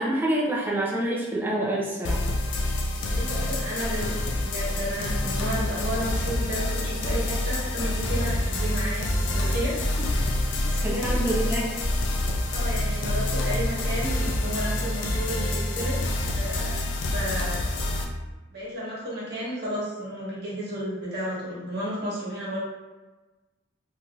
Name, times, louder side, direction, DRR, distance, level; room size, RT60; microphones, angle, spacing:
voice 1, 0.0-2.2 10.8-11.7, right 1 dB, 10° right, -4 dB, 0.4 m, -26 dB
sound 1, 2.0-18.0, left 1 dB, 60° left, 0.4 m, -27 dB
voice 2, 3.1-10.1 10.5-11.2 12.5-16.0 16.3-17.7 18.5-22.6, equal, 55° right, -7 dB, 1.2 m, -32 dB
3.2 x 2.6 x 2.3 m, 1.2 s
head